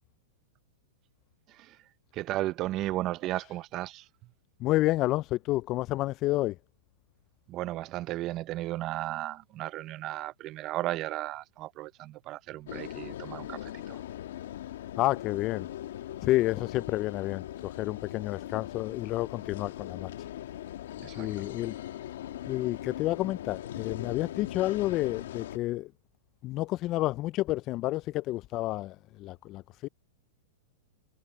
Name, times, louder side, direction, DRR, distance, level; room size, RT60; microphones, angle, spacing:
voice 1, 2.1-4.0 7.5-14.0 21.0-21.3, right 15 dB, 35° right, 0.9 m, -34 dB
voice 2, 4.6-6.5 15.0-15.7 16.2-20.1 21.2-21.7 22.5-25.9 26.4-29.9, left 17 dB, 35° left, 0.4 m, -30 dB
sound 1, 12.7-25.6, left 12 dB, 70° left, 1.7 m, -40 dB
hypercardioid pair, 135°, 0 cm